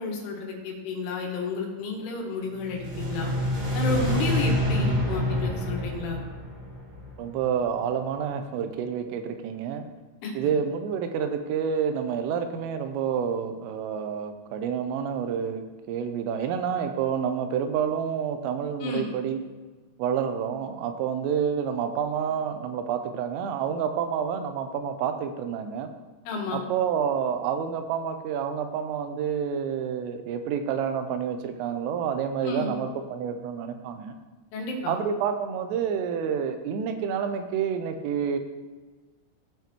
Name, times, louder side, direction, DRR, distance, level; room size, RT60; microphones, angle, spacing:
voice 1, 0.0-3.3 3.7-6.2 10.2-10.3 18.8-19.1 26.3-26.6 32.4-32.8 34.5-35.0, left 3 dB, 75° left, 0 dB, 3.7 m, -31 dB
sound 1, 2.6-7.8, equal, 55° right, 1.9 m, -27 dB
voice 2, 7.2-9.8 10.4-19.4 20.0-25.9 26.5-34.2 34.9-38.4, right 7 dB, 85° right, 7 dB, 3.2 m, -28 dB
16.0 x 5.8 x 3.0 m, 1.3 s
omnidirectional pair, 5.8 m